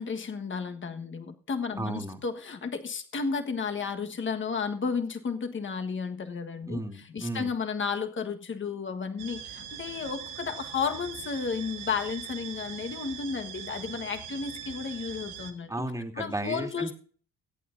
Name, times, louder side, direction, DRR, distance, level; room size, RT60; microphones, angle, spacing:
voice 1, 0.0-6.8 7.1-15.7 16.2-16.9, left 5 dB, 40° left, 6 dB, 1.5 m, -33 dB
voice 2, 1.8-2.2 6.7-7.5 15.7-16.9, right 1 dB, 10° right, 3 dB, 2.2 m, -34 dB
sound 1, 9.2-15.5, right 8 dB, 90° right, 1.4 m, -41 dB
22.5 x 8.7 x 2.7 m, 0.43 s
cardioid pair, 90°, 30 cm